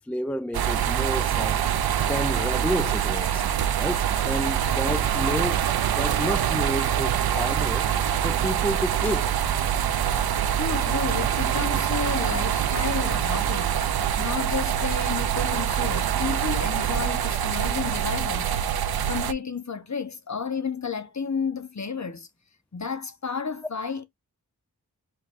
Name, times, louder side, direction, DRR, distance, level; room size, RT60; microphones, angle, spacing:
voice 1, 0.0-1.6 2.0-3.4 3.8-5.6 5.9-7.9 8.2-9.4, equal, 5° left, 0.4 m, -30 dB
sound 1, 0.5-19.3, right 9 dB, 75° right, 0.5 m, -25 dB
voice 2, 10.5-13.9 14.2-18.6 19.1-22.3 22.7-24.0, left 6 dB, 45° left, 0.9 m, -32 dB
5.0 x 3.3 x 2.5 m
wide cardioid pair, 40°, 38 cm